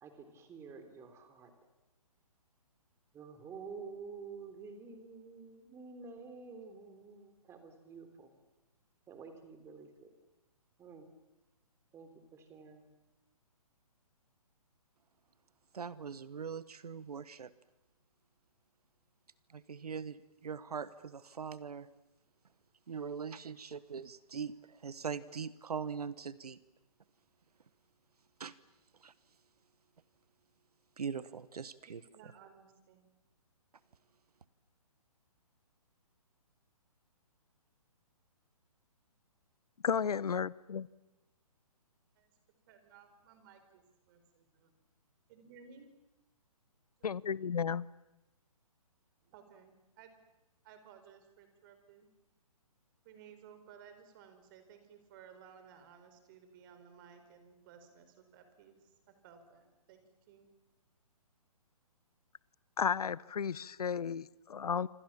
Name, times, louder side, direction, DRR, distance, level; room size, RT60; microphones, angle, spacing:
voice 1, 0.0-1.5 3.1-8.3 9.1-10.1 10.8-11.0 11.9-12.9, right 5 dB, 15° right, 3.4 m, -49 dB
voice 2, 15.7-17.5 19.5-20.2 20.4-21.9 22.9-26.6 28.4-28.5 29.0-29.1 31.0-32.0, right 6 dB, 80° right, 1.2 m, -41 dB
voice 3, 31.8-33.1 42.2-42.3 42.7-44.7 45.3-45.9 47.0-47.4 49.2-50.2 50.6-52.1 53.0-60.5, right 7 dB, 35° right, 4.7 m, -58 dB
voice 4, 39.8-40.9 47.0-47.9 62.8-64.9, left 7 dB, 80° left, 0.8 m, -33 dB
26.5 x 26.5 x 7.3 m
hypercardioid pair, 150°, 19 cm